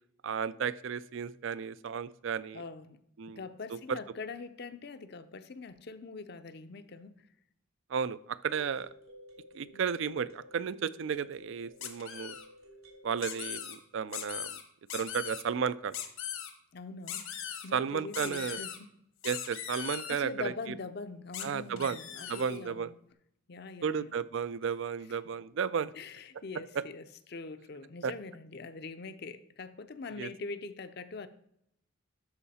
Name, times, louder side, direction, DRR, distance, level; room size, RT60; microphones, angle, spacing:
voice 1, 0.2-2.6 3.2-3.4 3.7-4.0 7.9-8.9 9.5-12.4 13.0-14.6 14.9-16.0 17.7-18.6 19.2-20.5 21.4-22.0 22.3-22.9 23.8-25.9 26.7-26.8 28.0-28.1 30.2-30.3, right 6 dB, 65° right, 17 dB, 0.4 m, -33 dB
voice 2, 2.5-3.0 3.3-7.2 9.7-9.8 16.7-17.3 17.6-18.9 20.1-23.0 23.5-24.1 25.9-31.3, left 4 dB, 50° left, 10 dB, 0.5 m, -43 dB
sound 1, 5.7-5.8 8.5-13.7, equal, 80° right, 3.2 m, -53 dB
sound 2, 11.8-12.5 13.2-13.8 14.1-14.6 14.9-15.4 15.9-16.5 17.1-17.7 18.1-18.8 19.2-20.2 21.3-21.5 21.8-22.6, left 9 dB, 75° left, 1.2 m, -39 dB
12.5 x 4.8 x 4.2 m, 0.73 s
head